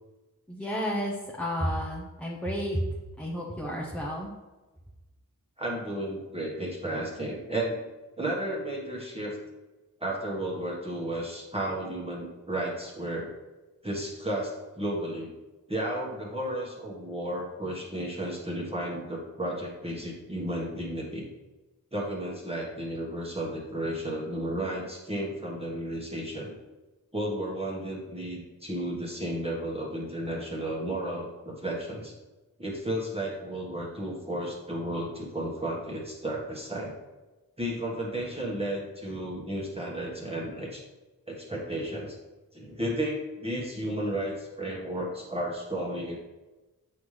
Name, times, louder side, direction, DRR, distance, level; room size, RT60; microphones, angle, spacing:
voice 1, 0.5-2.9 3.2-4.3, equal, 5° left, -4 dB, 1.0 m, -31 dB
voice 2, 5.6-7.8 8.2-9.4 10.0-13.3 13.8-15.3 15.7-21.2 21.9-26.5 27.1-32.1 32.6-36.9 37.6-40.8 41.3-42.2 42.5-46.2, right 1 dB, 15° right, -4 dB, 1.5 m, -33 dB
8.2 x 5.6 x 3.3 m, 1.1 s
wide cardioid pair, 85°, 34 cm